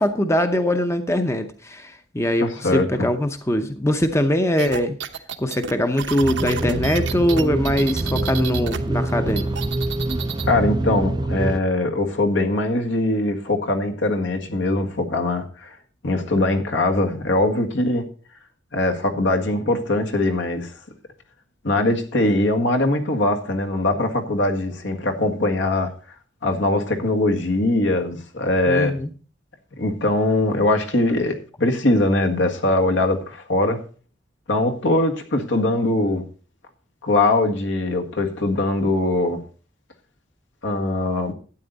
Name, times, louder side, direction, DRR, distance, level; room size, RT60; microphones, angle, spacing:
voice 1, 0.0-5.0 5.4-9.5 28.7-29.1, left 1 dB, 15° left, 7 dB, 0.7 m, -22 dB
voice 2, 2.4-3.1 10.5-15.7 16.0-18.0 18.7-20.7 21.6-25.9 26.4-28.9 29.8-33.8 34.5-36.2 37.0-39.4 40.6-41.3, left 2 dB, 75° left, 3 dB, 1.7 m, -21 dB
sound 1, 4.6-8.8 9.1-10.5, right 8 dB, 70° right, 1.0 m, -31 dB
sound 2, 6.2-11.6, right 2 dB, 20° right, 0.5 m, -25 dB
12.5 x 9.1 x 4.0 m, 0.39 s
head